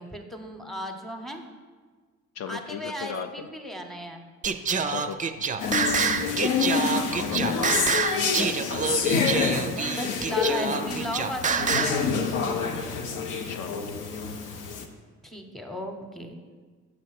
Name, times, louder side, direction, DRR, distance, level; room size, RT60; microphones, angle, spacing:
voice 1, 0.0-1.5 2.5-4.3 6.8-7.9 9.7-12.9 15.2-16.4, equal, ahead, 4 dB, 0.9 m, -36 dB
voice 2, 2.4-3.5 4.9-5.3 6.5-8.5 13.5-14.0, left 7 dB, 55° left, 7 dB, 0.5 m, -36 dB
Singing, 4.4-12.0, right 5 dB, 25° right, 0.4 m, -27 dB
sound 1, 5.6-14.8, left 5 dB, 90° left, 0.8 m, -28 dB
Bass guitar, 5.7-8.7, left 5 dB, 40° left, 0.8 m, -37 dB
7.4 x 5.3 x 5.9 m, 1.5 s
cardioid pair, 90°, 30 cm